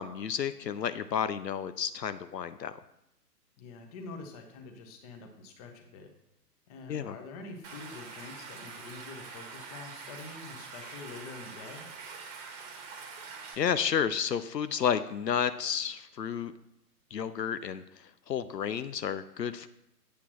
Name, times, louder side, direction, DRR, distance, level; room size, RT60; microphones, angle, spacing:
voice 1, 0.0-2.7 6.9-7.2 13.6-16.5 17.1-19.7, left 8 dB, 80° left, 13 dB, 0.6 m, -31 dB
voice 2, 3.6-6.1 6.7-11.9, left 3 dB, 25° left, 4 dB, 1.1 m, -46 dB
Stream, 7.6-13.5, right 5 dB, 25° right, 1.3 m, -45 dB
8.3 x 8.2 x 3.0 m, 0.82 s
figure-of-eight pair, 130°, 49 cm